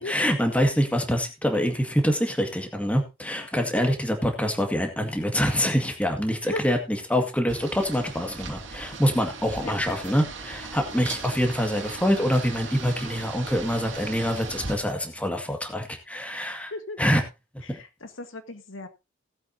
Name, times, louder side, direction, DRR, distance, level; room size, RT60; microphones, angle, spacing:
voice 1, 0.1-6.8 7.1-16.7 17.0-17.2 17.7-17.8, equal, 5° left, 4 dB, 1.9 m, -25 dB
sound 1, 7.5-14.8, right 4 dB, 65° right, 2.6 m, -38 dB
voice 2, 17.6-18.9, left 2 dB, 80° left, 8 dB, 1.5 m, -36 dB
18.5 x 8.2 x 2.8 m, 0.27 s
head